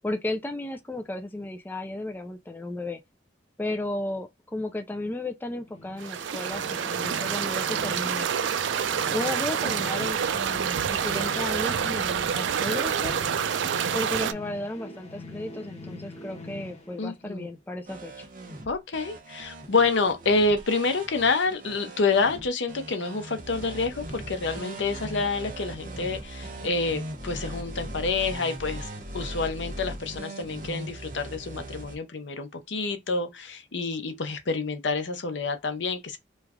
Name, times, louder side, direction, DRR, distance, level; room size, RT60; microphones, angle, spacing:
voice 1, 0.0-3.0 3.6-8.3 9.1-13.2 13.9-18.3, left 1 dB, 10° left, 0.3 m, -34 dB
sound 1, 5.7-17.6, left 2 dB, 35° left, 0.7 m, -43 dB
sound 2, 6.0-14.3, right 8 dB, 80° right, 0.4 m, -27 dB
voice 2, 17.0-17.5 18.7-28.9 29.1-36.2, left 3 dB, 75° left, 0.7 m, -28 dB
sound 3, 17.9-32.0, right 1 dB, 45° right, 0.9 m, -39 dB
3.1 x 2.3 x 3.5 m
head